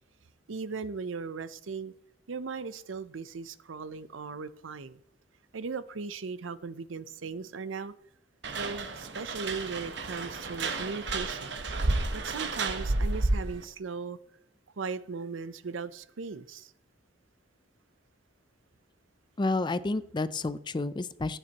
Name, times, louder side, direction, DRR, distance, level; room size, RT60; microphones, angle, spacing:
voice 1, 0.5-1.9 2.3-5.0 5.5-7.9 8.6-11.6 12.1-14.2 14.8-16.7, right 4 dB, 85° right, 0.6 m, -38 dB
sound 1, 8.4-13.6, right 2 dB, 65° right, 1.1 m, -31 dB
voice 2, 19.4-21.4, left 2 dB, 25° left, 0.4 m, -30 dB
15.5 x 8.9 x 2.9 m
head